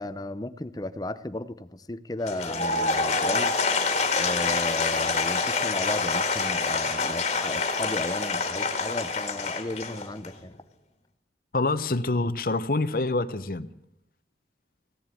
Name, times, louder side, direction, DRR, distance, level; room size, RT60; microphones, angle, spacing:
voice 1, 0.0-3.6 4.1-10.5, left 1 dB, 20° left, 12 dB, 0.6 m, -34 dB
Applause / Crowd, 2.2-10.4, left 4 dB, 35° left, 1.9 m, -26 dB
voice 2, 11.5-13.7, left 2 dB, 50° left, 13 dB, 0.8 m, -26 dB
16.0 x 10.5 x 8.4 m, 0.76 s
head